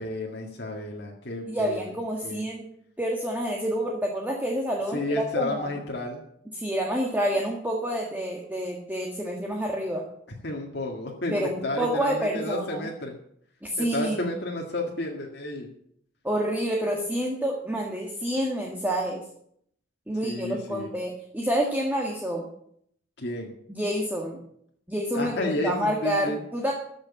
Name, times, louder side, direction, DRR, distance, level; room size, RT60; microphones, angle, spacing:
voice 1, 0.0-1.9 2.2-2.4 4.9-6.2 10.4-13.2 13.8-15.7 20.2-20.9 23.2-23.5 25.1-26.4, left 1 dB, 60° left, -1 dB, 2.0 m, -31 dB
voice 2, 1.5-2.7 3.0-5.7 6.6-10.0 11.3-12.9 13.6-14.3 16.2-19.2 20.1-22.5 23.7-24.4 24.9-26.7, equal, 10° right, -1 dB, 1.7 m, -28 dB
14.0 x 6.6 x 8.4 m, 0.68 s
head